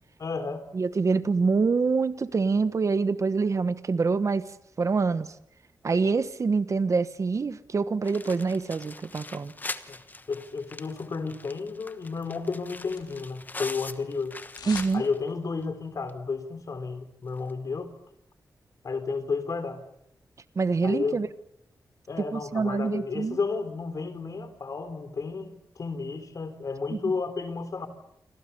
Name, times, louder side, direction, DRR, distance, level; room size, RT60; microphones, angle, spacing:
voice 1, 0.2-0.7 5.9-6.0 9.9-10.0 10.3-14.3 14.9-17.9 18.8-19.8 20.8-21.2 22.1-27.9, left 4 dB, 55° left, 10 dB, 3.6 m, -32 dB
voice 2, 0.7-4.4 4.8-5.3 5.8-9.5 14.7-15.0 20.5-21.3 22.3-23.4 26.9-27.0, right 4 dB, 50° right, 13 dB, 1.3 m, -25 dB
sound 1, 8.0-15.3 15.6-15.7 16.1-16.2 17.4-17.5, left 2 dB, 25° left, 1.2 m, -42 dB
sound 2, 12.2-13.5 13.7-15.0 15.3-15.4, left 5 dB, 85° left, 4.0 m, -44 dB
28.0 x 26.0 x 6.9 m, 0.75 s
wide cardioid pair, 130°, 7 cm